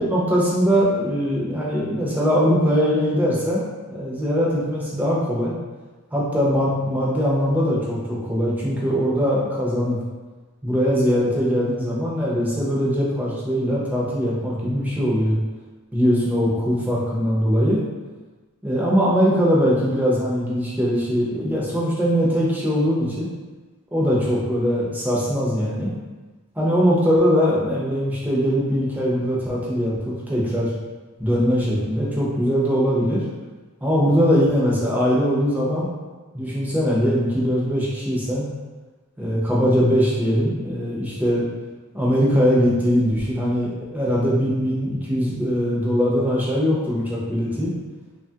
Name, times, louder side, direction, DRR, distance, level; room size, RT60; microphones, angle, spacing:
voice 1, 0.0-5.5 6.1-10.0 10.6-15.4 15.9-17.8 18.6-23.3 23.9-25.9 26.6-30.7 31.2-33.2 33.8-35.9 36.3-38.5 39.2-41.5 41.9-47.7, equal, 10° right, -6 dB, 0.5 m, -21 dB
2.8 x 2.3 x 2.7 m, 1.3 s
head